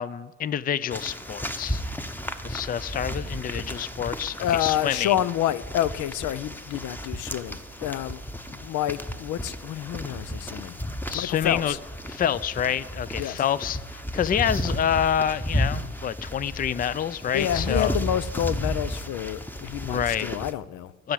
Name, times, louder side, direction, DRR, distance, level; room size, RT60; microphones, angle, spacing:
voice 1, 0.0-1.8 2.4-5.2 11.1-11.8 12.1-18.0 19.8-20.3 21.0-21.1, left 9 dB, 30° left, 0.4 m, -27 dB
sound 1, 0.9-20.5, equal, 5° left, 0.9 m, -33 dB
voice 2, 4.4-8.2 8.5-10.7 11.1-11.8 13.2-13.4 17.3-20.9, left 11 dB, 80° left, 0.6 m, -28 dB
13.0 x 6.0 x 9.0 m
cardioid pair, 90°, 30 cm